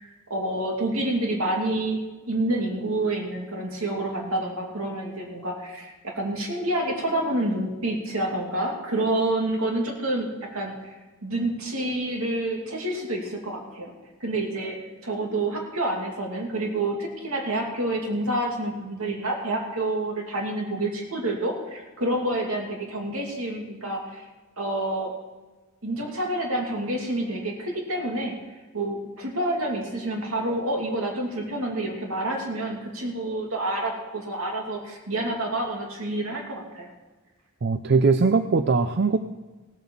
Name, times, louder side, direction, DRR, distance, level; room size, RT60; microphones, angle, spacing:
voice 1, 0.0-2.0 2.3-10.9 11.2-13.9 14.2-24.2 24.6-25.1 25.8-28.3 28.7-36.9, right 1 dB, 70° right, 1 dB, 2.7 m, -28 dB
voice 2, 37.6-39.2, right 4 dB, 50° right, 9 dB, 0.5 m, -20 dB
17.0 x 7.6 x 7.2 m, 1.2 s
head